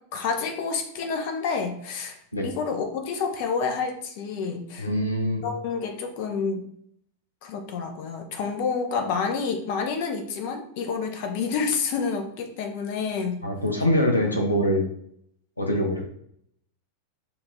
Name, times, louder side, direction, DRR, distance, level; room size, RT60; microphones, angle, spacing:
voice 1, 0.1-4.9 5.4-6.7 7.4-13.4, left 5 dB, 50° left, 4 dB, 0.7 m, -29 dB
voice 2, 4.8-5.4 13.4-14.8 15.6-16.1, equal, 85° left, 2 dB, 0.6 m, -24 dB
6.8 x 2.5 x 2.7 m, 0.69 s
figure-of-eight pair, 90°, 0 cm